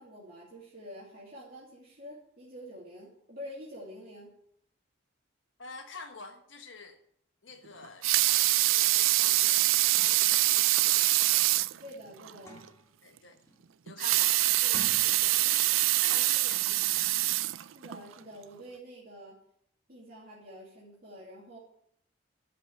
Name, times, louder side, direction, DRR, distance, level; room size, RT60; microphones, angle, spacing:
voice 1, 0.0-4.3 11.8-12.6 17.7-19.4 19.9-21.6, equal, 45° right, 2.8 m, -47 dB
voice 2, 5.6-7.0 7.4-11.4 13.0-13.4 13.8-17.2, left 4 dB, 65° left, 1.3 m, -48 dB
Water tap faucet / Sink (filling or washing) / Liquid, 7.8-11.8 12.3-12.4 12.7-12.8 13.9-18.0 18.6-18.7, right 17 dB, 80° right, 0.4 m, -25 dB
sound 1, 10.1-10.2 10.4-10.6 11.2-11.3 11.7-13.0 13.4-13.8 14.6-15.6 15.9-16.1, left 1 dB, 15° left, 1.6 m, -48 dB
12.5 x 5.4 x 9.1 m
head